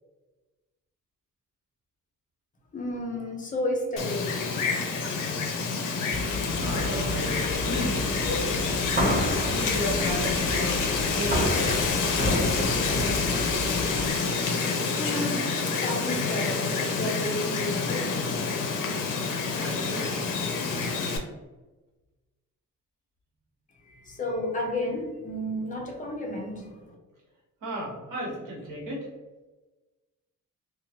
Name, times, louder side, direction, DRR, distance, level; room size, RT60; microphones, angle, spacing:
voice 1, 2.7-5.1 14.9-18.2 23.8-26.9, left 1 dB, 25° left, 0 dB, 0.4 m, -32 dB
Wind, 4.0-21.2, left 4 dB, 80° left, 0.6 m, -28 dB
sound 1, 6.1-14.1, left 1 dB, 30° right, 0.6 m, -30 dB
voice 2, 6.6-8.6 9.4-12.0 19.6-20.1 27.6-29.1, equal, 75° right, -3 dB, 1.1 m, -34 dB
2.8 x 2.2 x 2.8 m, 1.2 s
wide cardioid pair, 175°, 32 cm